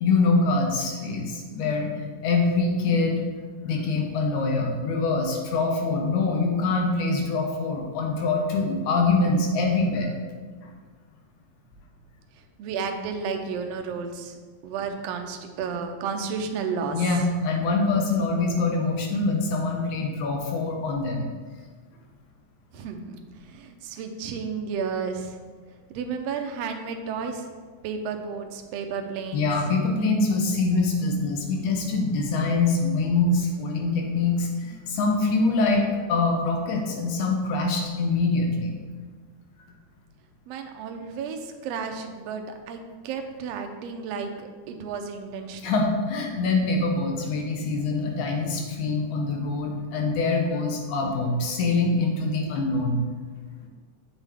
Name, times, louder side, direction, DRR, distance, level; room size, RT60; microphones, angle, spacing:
voice 1, 0.0-1.9 2.2-3.2 3.6-10.1 16.9-21.3 29.3-38.7 45.6-53.0, left 3 dB, 75° left, 1 dB, 2.2 m, -24 dB
voice 2, 12.6-14.4 14.6-17.0 22.7-25.4 25.9-27.5 27.8-29.5 40.5-45.7, right 5 dB, 80° right, 5 dB, 1.4 m, -32 dB
8.2 x 6.0 x 3.5 m, 1.5 s
omnidirectional pair, 3.7 m